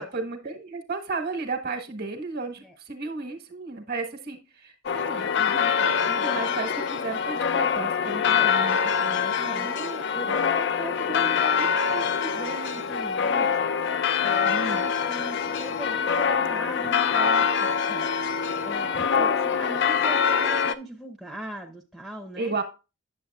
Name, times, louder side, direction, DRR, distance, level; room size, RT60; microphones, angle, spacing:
voice 1, 0.0-9.7 10.1-10.4 14.4-14.8 19.2-19.3 22.4-22.6, right 3 dB, 45° right, 6 dB, 1.4 m, -34 dB
sound 1, 4.9-20.7, left 6 dB, 55° left, 0.5 m, -24 dB
voice 2, 5.7-6.7 8.3-8.5 9.3-13.7 14.2-18.1 18.5-22.5, right 2 dB, 5° right, 1 dB, 0.8 m, -39 dB
8.9 x 7.3 x 2.3 m, 0.29 s
head